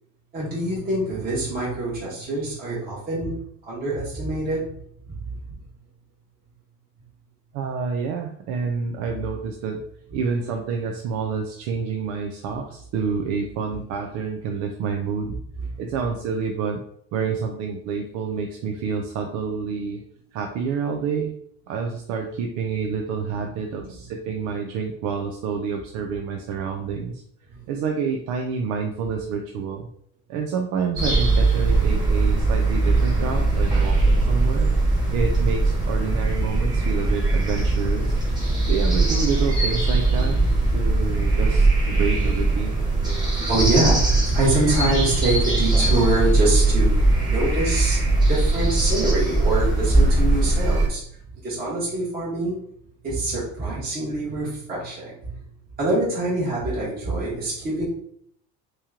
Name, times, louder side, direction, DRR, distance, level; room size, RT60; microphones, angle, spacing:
voice 1, 0.3-3.4 3.6-4.8 5.1-5.4 15.2-15.4 15.7-15.8 23.3-23.4 23.8-23.9 27.5-27.6 35.0-35.4 38.6-38.7 41.0-41.4 42.7-42.9 43.5-48.0 48.3-51.0 51.4-52.6 53.0-55.4 55.8-57.9, right 2 dB, 30° right, -7 dB, 1.3 m, -25 dB
voice 2, 7.5-9.8 10.1-15.4 15.8-16.8 17.1-20.0 20.3-21.3 21.7-27.2 27.7-29.9 30.3-34.7 35.1-38.2 38.6-40.4 40.7-42.8, right 5 dB, 70° right, 3 dB, 0.6 m, -28 dB
sound 1, 31.0-50.9, right 2 dB, 15° right, 1.3 m, -20 dB
3.0 x 2.9 x 3.6 m, 0.67 s
cardioid pair, 130°, 30 cm